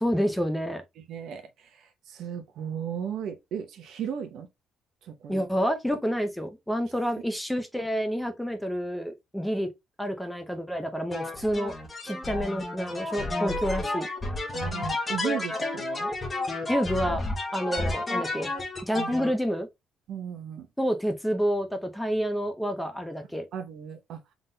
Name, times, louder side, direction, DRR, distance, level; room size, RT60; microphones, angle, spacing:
voice 1, 0.0-0.8 5.3-9.7 10.0-11.7 12.0-14.1 16.7-17.2 17.5-18.5 18.8-19.7 20.8-23.5, equal, 5° left, 0.7 m, -28 dB
voice 2, 1.0-4.5 5.0-5.5 14.5-16.1 18.9-19.1 20.1-20.7 23.5-24.2, right 8 dB, 70° right, 0.9 m, -36 dB
sound 1, 11.1-19.3, left 2 dB, 20° left, 1.2 m, -31 dB
3.7 x 3.6 x 2.7 m
cardioid pair, 135°, 0 cm